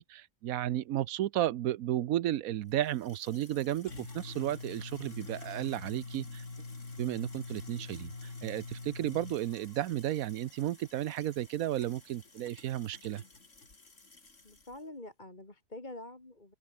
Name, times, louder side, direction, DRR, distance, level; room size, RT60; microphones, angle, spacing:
voice 1, 0.0-6.4 7.0-13.2, right 12 dB, 85° right, 1.1 m, -33 dB
sound 1, 2.7-14.8, left 3 dB, 60° left, 3.8 m, -47 dB
voice 2, 14.4-16.5, left 2 dB, 35° left, 3.2 m, -46 dB
open air
omnidirectional pair, 1.4 m